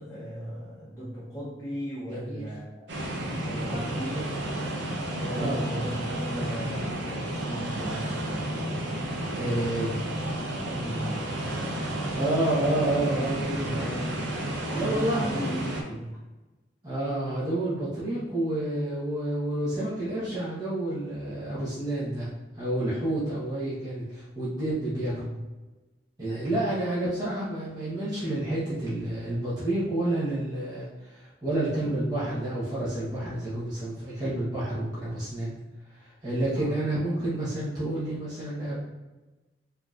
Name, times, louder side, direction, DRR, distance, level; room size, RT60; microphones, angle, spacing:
voice 1, 0.0-2.9 3.4-4.3 5.2-8.5 9.7-9.9 10.7-11.9 13.1-13.2 13.5-14.1 14.7-16.1 25.1-25.3 26.3-26.5 36.5-36.8, equal, 15° left, -9 dB, 0.8 m, -37 dB
voice 2, 2.1-2.4 3.6-3.9 5.4-5.6 9.3-9.9 12.1-13.9 14.7-15.5 16.8-22.3 22.6-25.1 26.2-35.5 35.9-38.8, right 1 dB, 20° right, -10 dB, 1.0 m, -29 dB
sound 1, 2.9-15.8, right 1 dB, 75° right, 0.6 m, -31 dB
4.5 x 2.8 x 2.4 m, 1.2 s
head